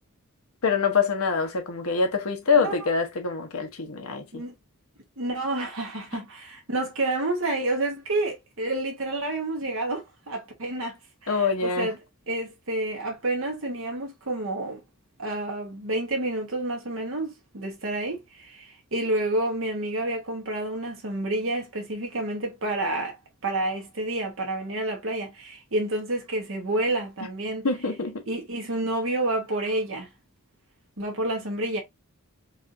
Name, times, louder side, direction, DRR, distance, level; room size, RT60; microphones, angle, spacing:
voice 1, 0.6-4.4 11.3-11.9 27.6-28.2, left 5 dB, 75° left, 1.0 m, -25 dB
voice 2, 2.5-2.9 4.3-4.5 5.2-12.0 12.3-14.8 15.2-23.2 23.4-27.7 28.3-30.1 31.0-31.8, right 2 dB, 65° right, 1.2 m, -29 dB
4.8 x 2.5 x 2.6 m
head